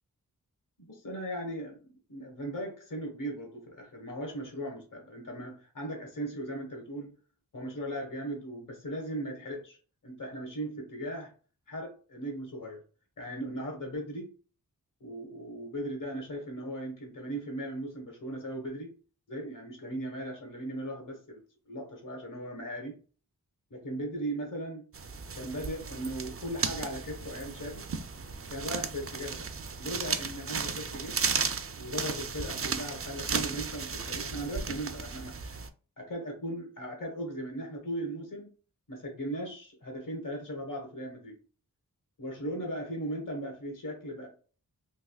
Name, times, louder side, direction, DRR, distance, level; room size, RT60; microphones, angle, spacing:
voice 1, 0.8-7.1 7.5-9.8 10.0-11.3 11.7-12.8 13.2-14.3 15.0-18.9 19.3-21.4 21.7-23.0 23.7-24.9 25.4-27.9 28.5-29.5 29.8-31.2 31.8-35.6 36.0-38.5 38.9-41.4 42.2-44.3, right 1 dB, 60° left, 1 dB, 1.2 m, -38 dB
sound 1, 24.9-35.7, right 5 dB, 40° right, 0.4 m, -35 dB
3.5 x 2.8 x 2.3 m, 0.37 s
wide cardioid pair, 50°, 36 cm